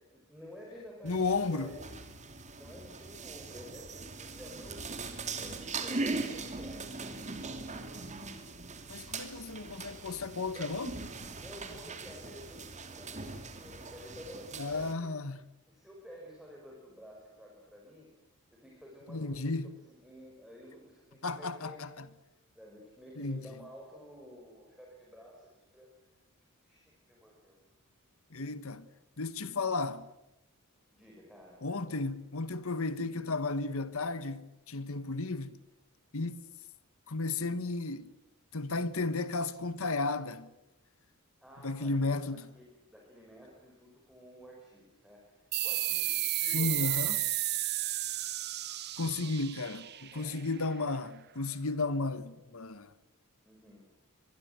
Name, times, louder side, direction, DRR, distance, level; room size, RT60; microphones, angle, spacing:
voice 1, 0.0-1.8 2.5-6.9 10.5-10.8 11.3-15.1 15.7-18.1 18.5-19.5 19.8-21.8 22.5-25.9 26.6-27.6 30.9-31.7 41.4-47.1 50.1-50.5 53.4-53.9, equal, ahead, 5.4 m, -51 dB
voice 2, 1.0-1.7 8.9-10.9 14.6-15.4 19.1-19.7 21.2-22.0 23.2-23.4 28.3-28.9 29.2-30.1 31.6-35.6 36.1-36.4 37.1-38.1 38.5-40.5 41.6-42.4 46.4-47.2 49.0-52.9, left 3 dB, 65° left, 1.4 m, -33 dB
sound 1, 1.1-14.9, right 3 dB, 30° right, 2.8 m, -41 dB
sound 2, 45.5-50.7, right 15 dB, 50° right, 1.0 m, -33 dB
25.0 x 22.5 x 8.1 m
head